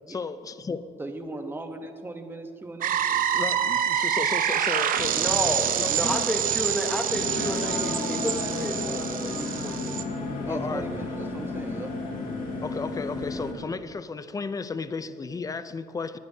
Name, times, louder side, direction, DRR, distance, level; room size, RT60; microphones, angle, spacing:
voice 1, 0.1-0.8 3.1-5.2 5.8-6.3 10.5-10.9 12.4-16.2, left 4 dB, 20° left, 13 dB, 0.5 m, -34 dB
voice 2, 1.0-2.9 10.4-12.0, right 2 dB, 15° right, 5 dB, 1.0 m, -38 dB
sound 1, 2.8-10.0, right 9 dB, 55° right, 0.8 m, -26 dB
voice 3, 5.1-10.0, left 1 dB, 5° left, 4 dB, 1.2 m, -31 dB
sound 2, 7.1-13.5, left 3 dB, 55° left, 2.3 m, -32 dB
19.5 x 10.5 x 2.8 m, 2.5 s
cardioid pair, 110°, 17 cm